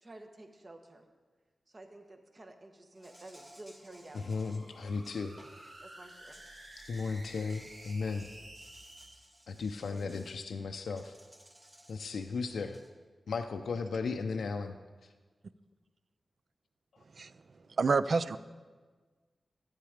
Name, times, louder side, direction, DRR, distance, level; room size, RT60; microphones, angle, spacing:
voice 1, 0.0-1.1 1.7-4.6 5.8-6.3, right 2 dB, 35° right, 5 dB, 1.2 m, -52 dB
Insect, 3.0-5.7 6.1-10.4 11.0-12.9, equal, 20° right, 1.9 m, -59 dB
sound 1, 3.7-9.1, right 1 dB, 75° right, 3.2 m, -52 dB
voice 2, 4.1-5.4 6.8-8.3 9.5-11.1 11.9-12.8 13.3-14.8 15.0-15.1, left 4 dB, 85° left, 6 dB, 0.5 m, -35 dB
voice 3, 17.8-18.4, right 4 dB, 55° right, 15 dB, 0.4 m, -27 dB
13.5 x 8.9 x 5.0 m, 1.4 s
wide cardioid pair, 115°, 0 cm